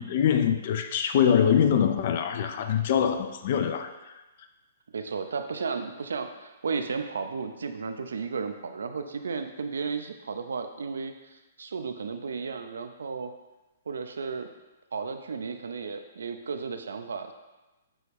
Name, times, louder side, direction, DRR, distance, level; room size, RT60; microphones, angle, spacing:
voice 1, 0.0-4.1, left 8 dB, 55° left, 7 dB, 0.4 m, -24 dB
voice 2, 4.9-13.3 13.9-14.5 14.9-17.3, right 5 dB, 80° right, 7 dB, 0.4 m, -34 dB
6.0 x 2.3 x 3.3 m, 1.1 s
hypercardioid pair, 130°, 0 cm